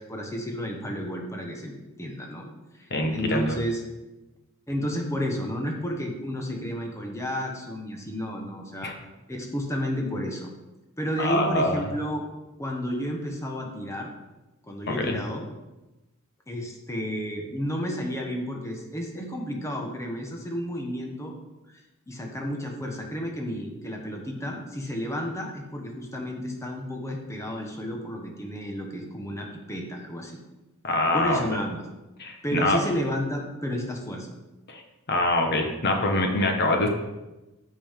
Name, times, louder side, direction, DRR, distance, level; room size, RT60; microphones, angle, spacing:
voice 1, 0.0-2.5 2.7-3.8 4.7-8.9 9.3-10.5 11.0-12.2 12.6-14.1 14.6-15.5 16.5-21.3 21.7-21.8 22.1-30.3 31.1-31.8 32.4-34.3, equal, 15° left, 1 dB, 1.1 m, -31 dB
voice 2, 2.9-3.5 8.8-8.9 11.2-11.7 14.9-15.2 30.8-31.4 32.2-32.8 34.7-34.8 35.1-36.9, left 1 dB, 50° left, 3 dB, 1.2 m, -24 dB
15.0 x 5.4 x 3.7 m, 1.0 s
head